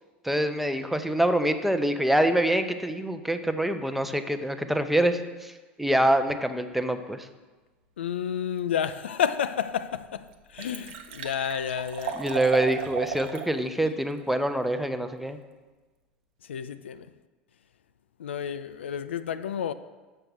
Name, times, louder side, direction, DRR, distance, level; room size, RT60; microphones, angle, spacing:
voice 1, 0.2-5.5 5.8-7.3 12.2-15.4, right 1 dB, 5° right, 0.6 m, -25 dB
voice 2, 8.0-12.2 16.4-17.1 18.2-19.7, left 8 dB, 80° left, 0.3 m, -30 dB
Liquid, 9.4-9.5 10.0-10.1 10.3-13.5 13.9-14.0, right 8 dB, 65° right, 0.9 m, -35 dB
6.5 x 5.7 x 6.2 m
hypercardioid pair, 80°, 6 cm